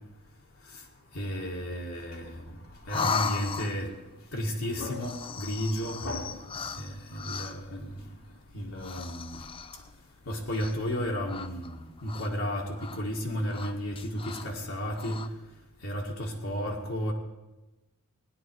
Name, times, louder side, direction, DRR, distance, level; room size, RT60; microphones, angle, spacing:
voice 1, 1.1-2.6 2.9-3.9 4.3-6.4 6.8-7.9 8.5-9.4 10.3-15.2 15.8-17.1, equal, 70° left, -2 dB, 1.9 m, -33 dB
sound 1, 2.9-4.0 4.9-7.7 8.7-9.9 10.5-11.0 11.3-12.5 12.8-13.0 13.4-14.5 14.9-15.3, left 5 dB, 25° left, 0.5 m, -36 dB
17.5 x 10.5 x 4.7 m, 1.0 s
head